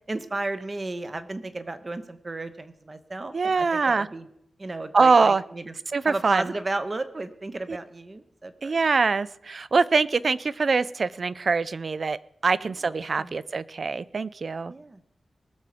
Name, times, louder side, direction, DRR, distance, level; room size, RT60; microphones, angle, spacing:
voice 1, 0.1-4.3 4.6-5.7 6.1-8.9 12.6-13.3 14.7-15.2, right 2 dB, 30° right, 11 dB, 0.9 m, -34 dB
voice 2, 3.3-4.1 4.9-5.4 5.9-6.5 7.7-7.8 8.6-14.7, right 4 dB, 45° right, 18 dB, 0.4 m, -23 dB
19.5 x 7.0 x 5.0 m, 0.77 s
wide cardioid pair, 155°, 0 cm